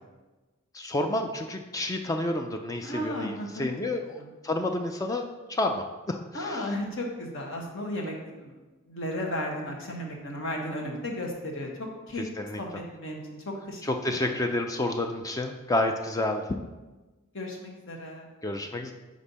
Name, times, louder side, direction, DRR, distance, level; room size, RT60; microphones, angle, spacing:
voice 1, 0.7-6.8 12.1-12.8 13.8-16.6 18.4-18.9, left 1 dB, 15° left, 5 dB, 0.3 m, -30 dB
voice 2, 2.8-3.7 4.2-4.3 6.3-8.5 8.9-12.2 12.6-12.7 12.9-13.2 13.7-13.8 17.3-18.3, left 1 dB, 65° left, 1 dB, 1.1 m, -34 dB
5.3 x 4.9 x 4.1 m, 1.2 s
head